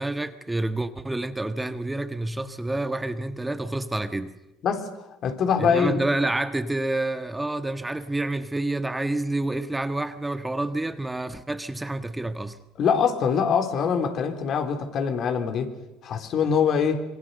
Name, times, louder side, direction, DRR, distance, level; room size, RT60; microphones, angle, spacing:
voice 1, 0.0-4.3 5.6-12.6, right 2 dB, 10° right, 1.5 m, -28 dB
voice 2, 5.2-6.0 12.8-15.7 16.0-17.0, left 6 dB, 55° left, 3.6 m, -23 dB
26.5 x 23.0 x 6.8 m
hypercardioid pair, 75°, 0 cm